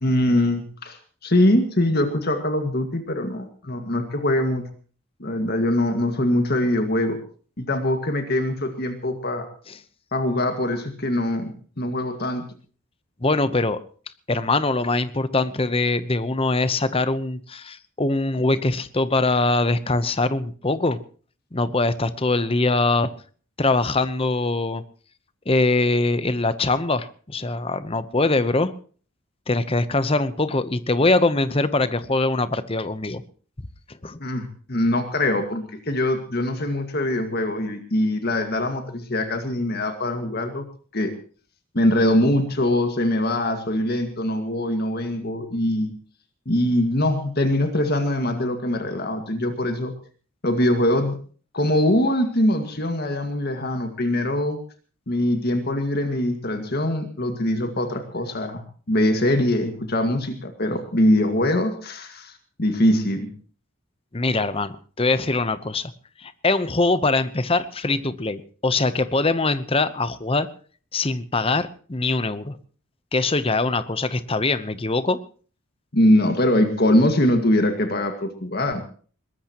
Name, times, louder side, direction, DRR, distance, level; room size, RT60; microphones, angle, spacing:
voice 1, 0.0-4.7 5.2-7.2 7.6-9.5 10.1-12.5 34.2-40.7 40.9-41.1 41.7-45.9 46.5-49.9 50.4-51.2 51.5-54.6 55.1-58.6 58.9-62.3 62.6-63.3 75.9-78.8, left 1 dB, 50° left, 6 dB, 2.0 m, -22 dB
voice 2, 13.2-13.8 14.3-21.0 21.5-23.1 23.6-24.8 25.5-28.7 29.5-33.2 34.0-34.2 64.1-65.9 66.2-70.5 70.9-72.6 73.1-75.2, left 2 dB, 25° left, 13 dB, 0.9 m, -22 dB
22.0 x 19.5 x 3.0 m, 0.43 s
head